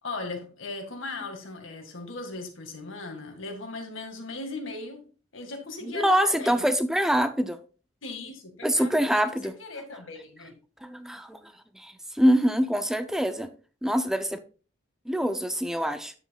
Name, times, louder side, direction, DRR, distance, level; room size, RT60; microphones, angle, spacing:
voice 1, 0.0-5.0 5.3-6.6 8.0-9.2 9.6-10.6, left 3 dB, 90° left, 1.9 m, -38 dB
voice 2, 5.8-7.6 8.6-9.5 10.8-11.4 11.7-13.5 13.8-14.4 15.1-16.1, equal, ahead, 0.4 m, -25 dB
9.8 x 7.7 x 2.4 m
head